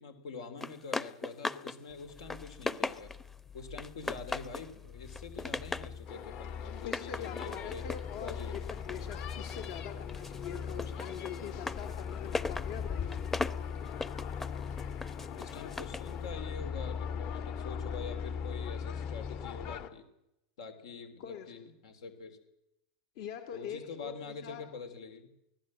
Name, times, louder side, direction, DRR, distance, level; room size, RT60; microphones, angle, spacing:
voice 1, 0.0-3.1 3.5-7.9 8.2-8.6 12.2-12.5 15.3-20.0 20.6-22.4 23.5-25.3, left 5 dB, 90° left, 8 dB, 3.4 m, -45 dB
sound 1, 0.6-1.8 2.1-3.3 3.8-4.7 5.1-5.9 6.8-9.8 10.1-16.1, left 2 dB, 10° left, 0.7 m, -39 dB
sound 2, 1.9-19.8, left 6 dB, 35° left, 2.4 m, -41 dB
sound 3, 6.1-19.9, left 8 dB, 50° left, 1.6 m, -45 dB
voice 2, 6.8-13.3 21.2-21.5 23.1-24.6, left 8 dB, 70° left, 6 dB, 3.0 m, -43 dB
24.0 x 16.5 x 7.6 m, 0.86 s
supercardioid pair, 125°, 3 cm